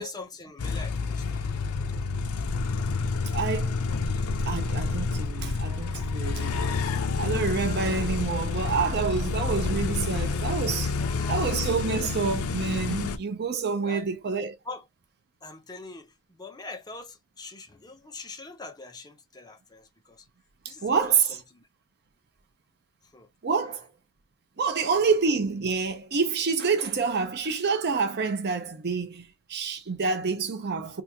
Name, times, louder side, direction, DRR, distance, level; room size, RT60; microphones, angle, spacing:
voice 1, 0.0-2.0 11.0-11.5 13.8-14.1 14.6-14.8 15.4-20.3 20.7-21.1 21.5-21.7 23.1-23.3 23.6-23.8 24.7-25.1, left 3 dB, 20° left, 0.7 m, -43 dB
sound 1, 0.6-13.2, left 4 dB, 75° left, 0.5 m, -29 dB
voice 2, 3.3-3.8 4.5-6.9 7.2-10.9 11.3-14.6 20.6-21.4 23.4-23.9 24.6-31.0, right 5 dB, 45° right, 0.6 m, -27 dB
3.4 x 2.5 x 2.8 m
head